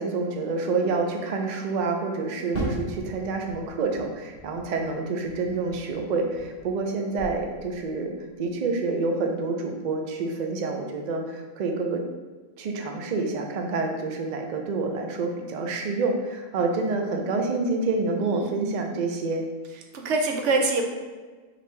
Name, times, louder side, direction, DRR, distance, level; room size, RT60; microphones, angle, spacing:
voice 1, 0.0-12.0 12.6-19.5, right 3 dB, 85° right, 3 dB, 0.4 m, -28 dB
Fireworks, 2.5-6.9 7.2-8.0, right 1 dB, 45° right, 1.6 m, -37 dB
voice 2, 18.2-18.9 19.9-20.8, right 3 dB, 65° right, 3 dB, 0.9 m, -26 dB
4.0 x 3.3 x 3.2 m, 1.4 s
omnidirectional pair, 1.4 m